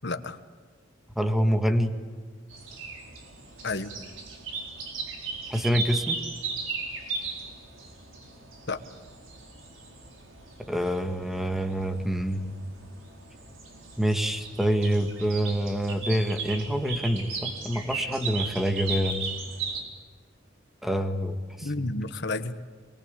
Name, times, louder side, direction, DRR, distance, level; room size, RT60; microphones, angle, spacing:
voice 1, 0.0-0.4 3.6-3.9 8.7-8.8 21.6-22.6, left 2 dB, 60° left, 9 dB, 1.5 m, -31 dB
voice 2, 1.2-2.0 5.5-6.2 10.6-12.5 14.0-19.3 20.8-21.9, equal, ahead, 7 dB, 1.9 m, -26 dB
sound 1, 2.5-19.8, right 4 dB, 85° right, 4.8 m, -37 dB
25.0 x 23.0 x 8.4 m, 1.5 s
head